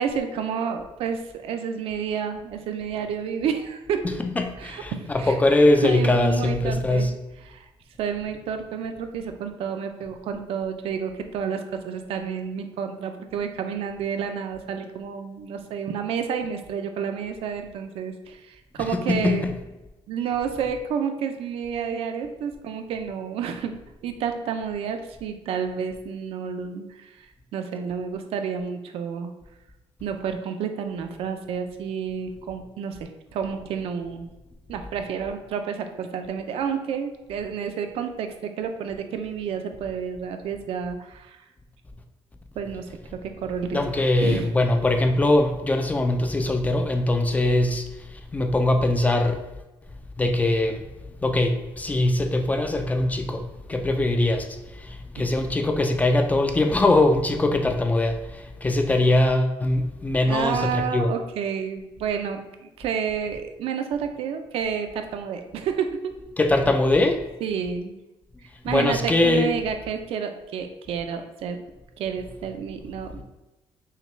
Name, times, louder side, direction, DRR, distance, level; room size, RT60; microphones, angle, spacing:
voice 1, 0.0-4.0 4.6-5.4 5.8-7.1 7.5-7.7 8.0-19.5 20.1-23.8 24.0-27.3 27.5-29.3 30.0-34.3 34.7-41.4 42.6-43.8 44.1-44.5 55.2-55.3 60.3-66.1 67.4-68.0 68.6-71.6 72.0-73.2, right 7 dB, 70° right, 6 dB, 0.4 m, -30 dB
voice 2, 4.0-7.1 18.9-19.6 43.7-49.4 50.2-50.9 51.2-61.1 66.4-67.2 68.6-69.5, left 2 dB, 15° left, 6 dB, 0.3 m, -22 dB
5.6 x 2.2 x 3.1 m, 1.0 s
cardioid pair, 150°, 10 cm